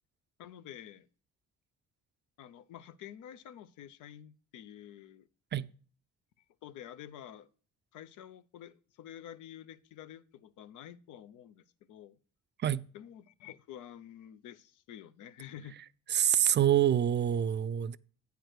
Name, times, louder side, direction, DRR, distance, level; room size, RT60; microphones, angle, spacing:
voice 1, 0.4-1.1 2.4-5.3 6.6-7.5 7.9-12.2 12.9-15.8, left 10 dB, 85° left, 0.6 m, -49 dB
voice 2, 16.1-18.0, right 10 dB, 40° right, 0.4 m, -26 dB
9.0 x 4.7 x 6.4 m
cardioid pair, 90°, 30 cm